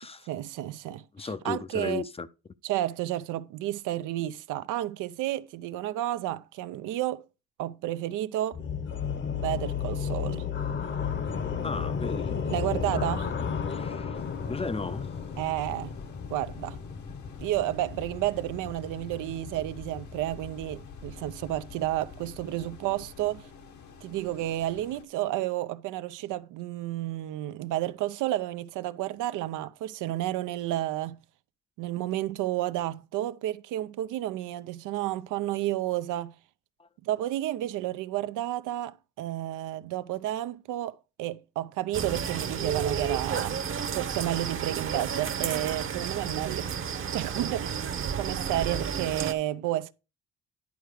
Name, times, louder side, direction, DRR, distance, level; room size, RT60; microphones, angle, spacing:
voice 1, 0.3-2.0 2.6-7.2 7.6-8.6 9.3-10.5 12.5-13.3 15.4-16.0 16.3-16.8 17.4-23.5 24.0-31.2 31.8-36.4 37.0-43.6 43.9-46.7 47.1-47.8 48.2-49.9, right 14 dB, 90° right, 0.5 m, -31 dB
voice 2, 1.1-2.3 11.6-12.4 13.7-14.2 14.5-15.1 36.8-36.9, left 4 dB, 20° left, 0.5 m, -35 dB
sound 1, 8.5-23.4, left 6 dB, 40° left, 0.9 m, -34 dB
sound 2, 14.1-25.0, left 5 dB, 70° left, 1.3 m, -50 dB
sound 3, 41.9-49.3, right 7 dB, 45° right, 0.9 m, -31 dB
10.5 x 4.6 x 4.9 m
cardioid pair, 90°, 30 cm